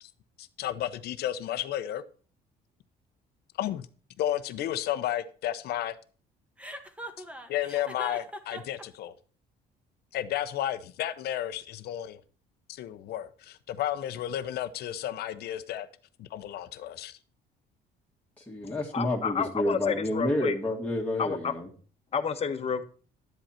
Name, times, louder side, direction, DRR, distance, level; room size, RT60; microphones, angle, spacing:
voice 1, 0.4-2.0 3.6-3.9 4.2-6.0 7.5-9.1 10.1-12.2 12.7-15.9 16.2-17.2, left 12 dB, 70° left, 0.8 m, -32 dB
Chuckle chortle, 6.6-8.8, equal, 5° right, 1.4 m, -40 dB
voice 2, 18.4-21.7, left 1 dB, 10° left, 2.0 m, -29 dB
voice 3, 18.9-20.5 21.2-21.5 22.1-22.8, left 6 dB, 35° left, 1.2 m, -30 dB
11.5 x 8.0 x 4.3 m
cardioid pair, 110°, 17 cm